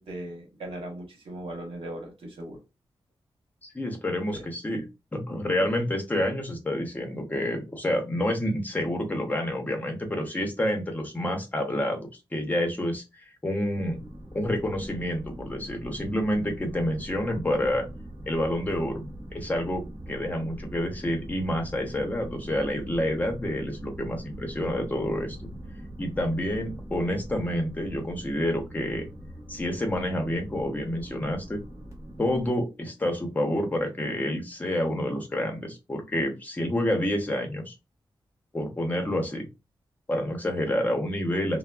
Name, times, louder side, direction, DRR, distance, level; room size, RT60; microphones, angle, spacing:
voice 1, 0.0-2.6 4.3-4.5, right 1 dB, 75° right, 2 dB, 1.0 m, -38 dB
voice 2, 3.6-4.9 5.1-13.0 13.4-14.0 14.3-17.9 18.3-25.4 26.0-29.1 29.5-31.6 32.2-37.7 38.5-39.5 40.1-41.6, left 1 dB, 15° left, 2 dB, 0.7 m, -28 dB
sound 1, 13.7-32.5, right 1 dB, 30° right, 1.0 m, -42 dB
3.4 x 2.0 x 2.3 m, 0.26 s
wide cardioid pair, 150°, 9 cm